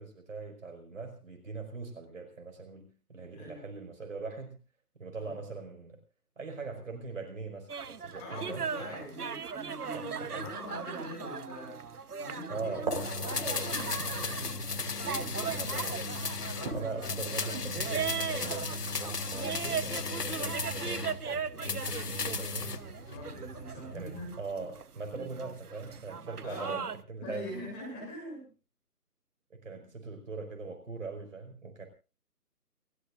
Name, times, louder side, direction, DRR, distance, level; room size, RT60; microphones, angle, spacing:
voice 1, 0.0-4.6 5.0-6.0 6.3-9.1 9.9-10.5 12.5-13.0 15.4-16.2 16.7-22.8 23.9-27.5 29.5-31.9, right 4 dB, 50° right, 4 dB, 5.2 m, -41 dB
sound 1, 7.7-27.0, right 6 dB, 70° right, 1.1 m, -39 dB
voice 2, 8.2-12.8 13.2-14.7 16.5-17.2 23.1-24.3 26.4-26.9 27.2-28.5, left 1 dB, 15° left, -1 dB, 7.2 m, -43 dB
sound 2, 12.5-24.4, right 3 dB, 25° right, 4.2 m, -42 dB
sound 3, 12.9-16.7 17.0-21.2 21.6-22.8 23.1-23.2, left 5 dB, 80° left, 1.6 m, -35 dB
29.0 x 14.5 x 2.6 m, 0.35 s
figure-of-eight pair, 165°, 47 cm